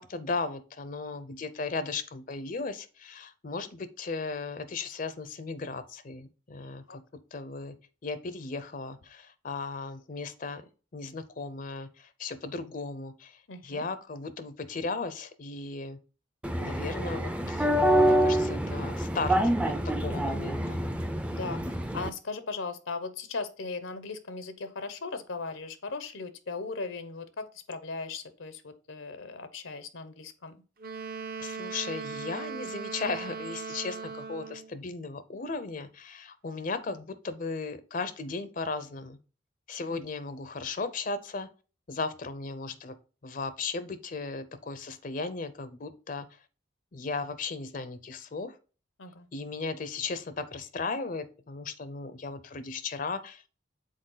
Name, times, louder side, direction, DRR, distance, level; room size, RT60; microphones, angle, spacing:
voice 1, 0.0-7.8 8.0-10.6 10.9-16.0 16.6-17.7 18.0-20.8 31.4-39.2 39.7-41.5 41.9-43.0 43.2-46.3 46.9-48.6 49.3-53.5, left 4 dB, 45° left, 13 dB, 0.5 m, -36 dB
voice 2, 13.5-13.9 21.3-30.6 49.0-49.3, left 4 dB, 85° left, 11 dB, 0.8 m, -38 dB
sound 1, 16.4-22.1, right 1 dB, 5° right, 0.4 m, -26 dB
Wind instrument woodwind instrument, 30.8-34.7, right 5 dB, 50° right, 0.7 m, -38 dB
6.5 x 4.3 x 3.8 m, 0.35 s
head